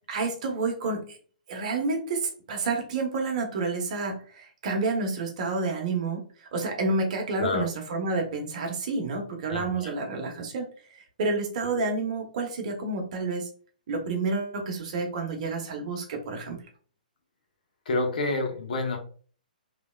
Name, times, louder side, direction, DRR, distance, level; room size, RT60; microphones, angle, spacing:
voice 1, 0.1-1.2 1.5-13.5 13.9-16.6, right 3 dB, 50° right, 3 dB, 0.9 m, -29 dB
voice 2, 9.5-9.9 17.8-19.0, left 3 dB, 65° left, 3 dB, 0.9 m, -28 dB
3.1 x 2.7 x 2.2 m, 0.43 s
hypercardioid pair, 125°, 5 cm